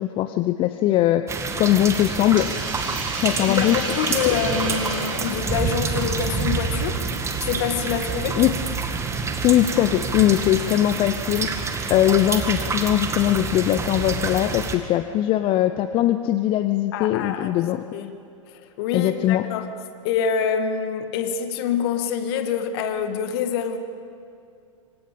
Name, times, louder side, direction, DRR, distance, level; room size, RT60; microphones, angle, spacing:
voice 1, 0.0-2.5 3.2-3.8 4.3-4.4 8.4-8.5 9.4-17.8 18.9-19.5, left 13 dB, 30° left, 11 dB, 0.7 m, -21 dB
sound 1, 1.3-14.8, right 5 dB, 15° right, 1.9 m, -27 dB
Hiss, 2.4-6.6, right 3 dB, 70° right, 4.4 m, -32 dB
voice 2, 3.5-7.1 7.4-8.4 16.9-17.6 17.9-18.1 18.5-19.7 20.0-23.8, left 7 dB, 50° left, 7 dB, 2.0 m, -26 dB
26.5 x 25.0 x 5.3 m, 2.5 s
figure-of-eight pair, 100°, 17 cm